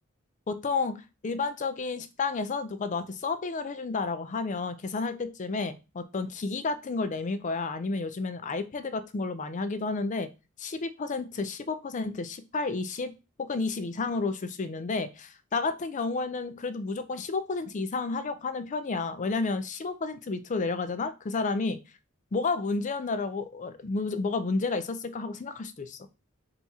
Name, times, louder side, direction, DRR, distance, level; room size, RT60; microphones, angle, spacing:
voice 1, 0.5-10.3 10.6-13.1 13.4-21.8 22.3-26.0, left 3 dB, 35° left, 11 dB, 0.4 m, -31 dB
3.5 x 2.9 x 4.1 m, 0.29 s
head